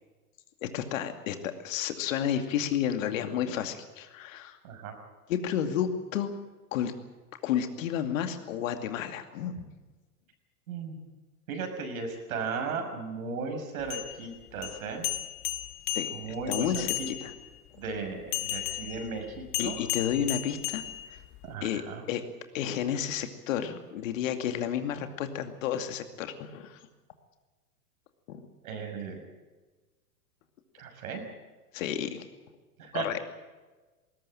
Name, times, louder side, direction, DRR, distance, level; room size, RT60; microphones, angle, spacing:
voice 1, 0.6-4.6 5.3-6.3 6.7-6.9 7.4-9.7 15.9-17.3 19.6-20.8 21.1-21.2 21.6-21.8 22.1-22.2 22.5-26.8 28.3-28.4 31.7-32.2 32.9-33.2, left 9 dB, 55° left, 8 dB, 2.5 m, -31 dB
voice 2, 4.6-4.9 10.7-11.0 11.5-15.1 16.1-17.1 17.8-19.8 21.4-22.0 28.6-29.2 30.8-31.2 32.8-33.1, right 4 dB, 60° right, 5 dB, 6.3 m, -36 dB
sound 1, 13.8-17.5 18.3-21.5, left 15 dB, 35° left, 1.5 m, -35 dB
20.0 x 19.0 x 9.0 m, 1.2 s
figure-of-eight pair, 105°, 47 cm